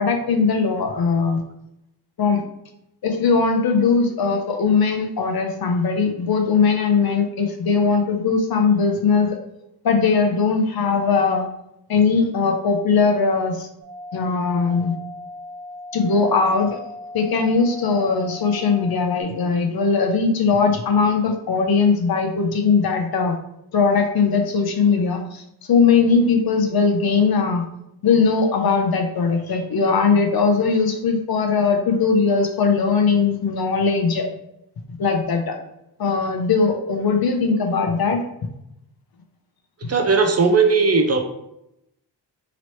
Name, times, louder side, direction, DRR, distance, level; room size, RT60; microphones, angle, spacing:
voice 1, 0.0-1.4 2.2-2.4 3.0-9.4 9.8-11.4 11.9-13.7 14.1-14.9 15.9-16.8 17.1-23.4 23.7-25.4 25.7-27.6 28.0-34.3 35.0-35.6 36.0-38.2 39.8-39.9, left 5 dB, 60° left, 4 dB, 0.7 m, -19 dB
sound 1, 13.8-19.2, left 2 dB, 20° right, 1.4 m, -38 dB
voice 2, 39.9-41.2, right 4 dB, 35° right, 4 dB, 0.5 m, -17 dB
3.0 x 2.9 x 3.0 m, 0.82 s
cardioid pair, 75°, 42 cm